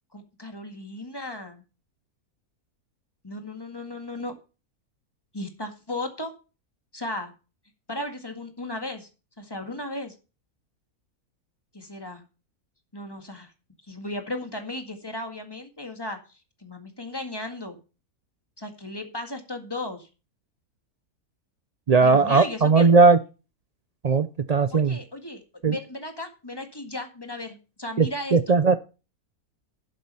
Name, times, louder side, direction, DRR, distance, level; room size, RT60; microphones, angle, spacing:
voice 1, 0.1-1.6 3.2-4.3 5.3-6.3 6.9-7.3 7.9-9.1 9.4-10.2 11.7-12.2 12.9-13.5 13.9-17.8 18.6-20.1 22.0-22.9 24.7-28.6, left 1 dB, 15° left, 5 dB, 1.8 m, -35 dB
voice 2, 21.9-23.2 24.0-25.0 25.6-25.8 28.0-28.7, right 4 dB, 85° right, 11 dB, 0.3 m, -18 dB
12.0 x 7.6 x 5.6 m, 0.33 s
omnidirectional pair, 1.6 m